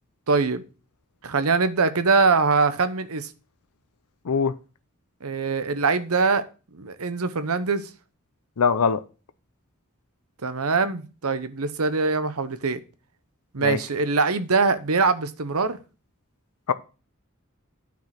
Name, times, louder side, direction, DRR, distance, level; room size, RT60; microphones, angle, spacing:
voice 1, 0.3-0.6 1.2-3.3 5.2-6.4 6.7-7.9 10.4-12.8 13.5-15.8, right 4 dB, 85° right, 0.9 m, -23 dB
voice 2, 8.6-9.0 13.6-13.8 16.7-16.8, left 6 dB, 85° left, 0.6 m, -21 dB
9.3 x 5.1 x 5.8 m
head